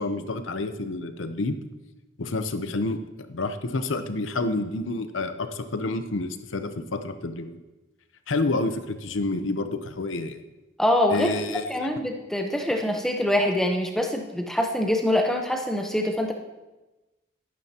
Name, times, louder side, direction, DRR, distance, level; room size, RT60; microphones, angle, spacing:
voice 1, 0.0-1.6 2.2-7.6 8.3-10.4 11.1-11.9, left 2 dB, 80° left, 9 dB, 0.8 m, -29 dB
voice 2, 10.8-11.3 11.7-16.3, left 1 dB, ahead, 2 dB, 0.9 m, -24 dB
13.0 x 11.5 x 2.9 m, 1.1 s
head